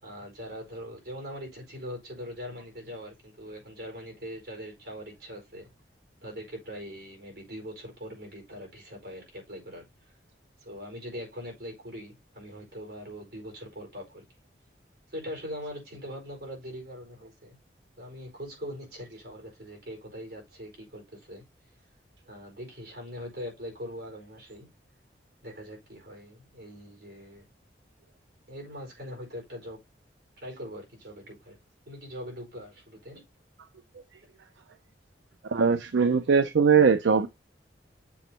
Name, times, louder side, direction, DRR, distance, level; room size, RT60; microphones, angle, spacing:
voice 1, 0.0-5.7 6.2-10.1 10.6-14.2 15.1-17.6 18.0-21.4 22.3-24.7 25.4-27.5 28.5-29.8 30.4-31.6 31.9-33.2, equal, 65° right, 4.3 m, -42 dB
voice 2, 35.5-37.3, right 5 dB, 85° right, 0.5 m, -21 dB
7.1 x 2.9 x 5.4 m
head